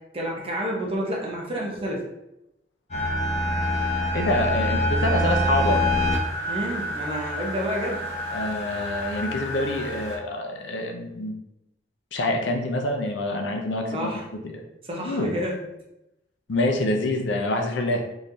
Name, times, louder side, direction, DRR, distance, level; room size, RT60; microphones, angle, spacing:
voice 1, 0.1-2.1 6.5-8.1 13.9-14.2 14.8-15.6, equal, 30° right, -2 dB, 0.8 m, -29 dB
sound 1, 2.9-10.2, left 1 dB, 35° left, 1.1 m, -26 dB
voice 2, 4.1-5.8 8.3-11.3 12.1-14.6 15.0-15.3 16.5-18.0, left 1 dB, 80° left, 3 dB, 0.6 m, -26 dB
3.7 x 3.1 x 2.7 m, 0.87 s
head